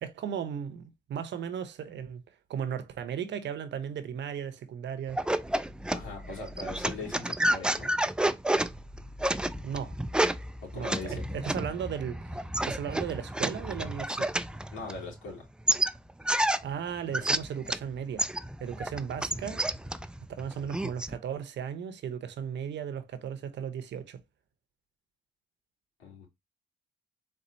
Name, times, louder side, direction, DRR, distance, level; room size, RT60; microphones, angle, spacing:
voice 1, 0.0-2.2 2.5-5.2 9.6-10.0 10.7-14.3 16.6-18.3 18.6-19.7 20.4-24.2, right 8 dB, 65° right, 0.8 m, -36 dB
sound 1, 5.1-15.3 15.7-17.9 18.2-21.2, right 1 dB, 5° right, 0.3 m, -30 dB
voice 2, 5.9-7.9 10.6-11.3 14.7-15.5 26.0-26.3, left 3 dB, 75° left, 2.6 m, -40 dB
4.3 x 3.8 x 2.6 m
cardioid pair, 90°, 20 cm